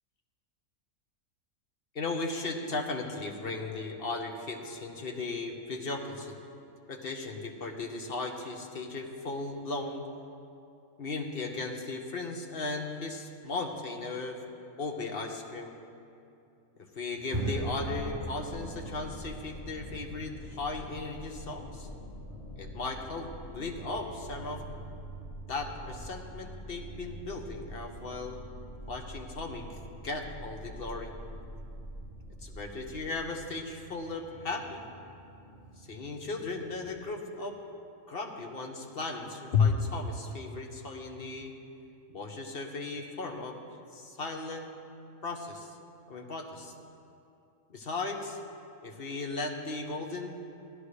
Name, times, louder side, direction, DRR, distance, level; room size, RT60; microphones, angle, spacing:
voice 1, 1.9-6.4 6.9-10.0 11.0-14.4 14.8-15.8 16.9-21.9 22.6-24.8 25.5-28.4 28.9-31.1 32.4-34.8 35.9-37.6 38.1-41.5 42.1-43.6 43.9-44.7 45.2-45.7 46.1-46.7 47.7-48.4 48.8-50.3, left 3 dB, 45° left, 2 dB, 1.1 m, -36 dB
sound 1, 17.1-37.0, right 2 dB, 60° right, 3.3 m, -44 dB
sound 2, 17.6-33.1, equal, 30° left, 2.3 m, -46 dB
17.5 x 11.0 x 3.3 m, 2.7 s
omnidirectional pair, 1.5 m